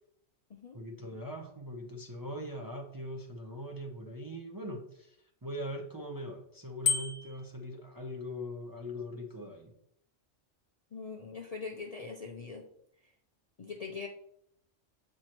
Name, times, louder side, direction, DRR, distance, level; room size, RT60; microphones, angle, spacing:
voice 1, 0.7-5.2 5.4-9.7, equal, 25° right, 1 dB, 0.6 m, -41 dB
Bicycle bell, 6.8-7.5, left 5 dB, 75° left, 1.0 m, -30 dB
voice 2, 10.9-12.6 13.6-14.1, left 5 dB, 45° left, 2 dB, 0.5 m, -41 dB
7.8 x 4.5 x 3.0 m, 0.72 s
omnidirectional pair, 1.2 m